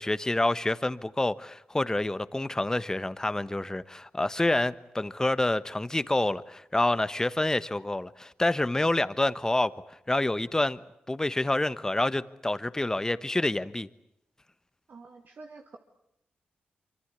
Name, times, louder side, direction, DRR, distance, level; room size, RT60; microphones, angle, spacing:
voice 1, 0.0-9.7 10.1-10.8 11.1-13.9, left 2 dB, 15° left, 1.2 m, -27 dB
voice 2, 14.9-15.8, right 3 dB, 65° right, 2.4 m, -48 dB
25.0 x 25.0 x 8.3 m
cardioid pair, 60°, 3 cm